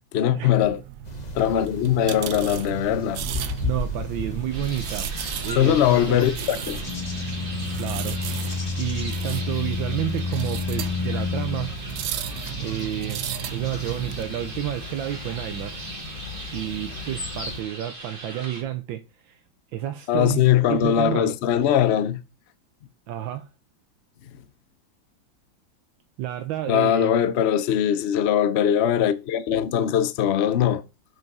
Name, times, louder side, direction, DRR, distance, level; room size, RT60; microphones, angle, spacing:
voice 1, 0.1-0.8 1.3-3.2 5.6-6.8 20.1-22.2 26.7-30.8, left 10 dB, 75° left, 0.6 m, -21 dB
sound 1, 0.6-14.2, right 11 dB, 65° right, 1.1 m, -35 dB
sound 2, 1.0-17.6, left 4 dB, 25° left, 1.1 m, -33 dB
voice 2, 3.6-5.1 5.4-6.3 7.8-8.2 8.8-11.7 12.6-13.2 13.5-15.9 16.5-19.4 19.7-20.4 20.7-21.3 23.1-23.5 26.2-27.1, right 12 dB, 80° right, 1.4 m, -30 dB
sound 3, 4.5-18.6, right 2 dB, 30° right, 1.8 m, -39 dB
6.2 x 5.3 x 5.3 m
omnidirectional pair, 2.1 m